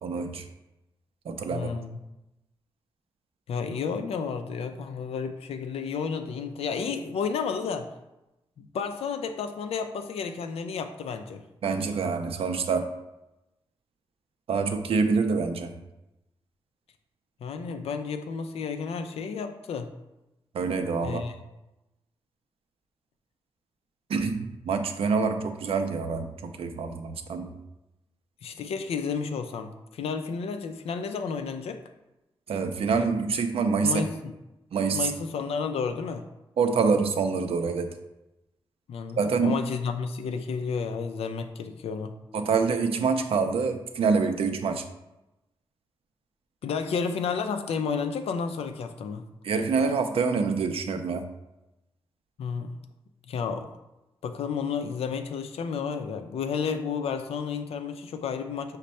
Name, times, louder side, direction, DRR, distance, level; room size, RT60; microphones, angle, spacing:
voice 1, 0.0-0.4 1.3-1.7 11.6-12.9 14.5-15.7 20.5-21.2 24.1-27.5 32.5-34.0 34.7-35.1 36.6-37.9 39.2-39.5 42.3-44.8 49.4-51.2, right 5 dB, 75° right, 7 dB, 0.5 m, -26 dB
voice 2, 1.5-2.0 3.5-7.9 8.6-11.4 17.4-19.9 21.0-21.4 28.4-31.8 33.8-34.3 34.9-36.2 38.9-42.1 46.6-49.2 52.4-52.8 53.3-53.7 54.2-58.8, left 6 dB, 85° left, 7 dB, 0.4 m, -31 dB
5.1 x 2.2 x 4.1 m, 0.96 s
cardioid pair, 60°, 10 cm